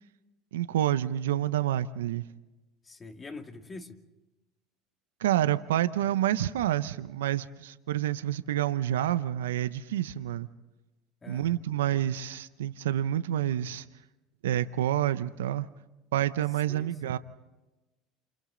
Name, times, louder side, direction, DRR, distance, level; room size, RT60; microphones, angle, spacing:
voice 1, 0.5-2.3 5.2-10.5 11.3-13.9 14.4-15.7 16.1-17.2, right 12 dB, 90° right, 0.6 m, -28 dB
voice 2, 2.8-4.0 11.2-11.6 16.7-17.2, left 3 dB, 25° left, 2.4 m, -45 dB
29.5 x 28.0 x 3.9 m
hypercardioid pair, 80°, 0 cm